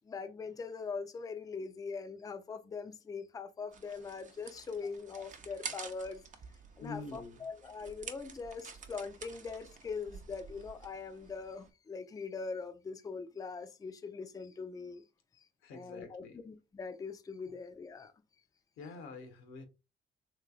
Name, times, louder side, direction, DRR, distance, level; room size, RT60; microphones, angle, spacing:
voice 1, 0.0-6.2 6.8-15.0 15.7-18.1, left 4 dB, 20° left, 0.4 m, -42 dB
sound 1, 3.7-11.7, right 5 dB, 40° right, 0.6 m, -49 dB
voice 2, 6.8-7.4 15.6-16.4 17.4-17.5 18.8-19.6, left 3 dB, 90° left, 0.9 m, -46 dB
3.2 x 3.0 x 2.4 m
cardioid pair, 90°, 20 cm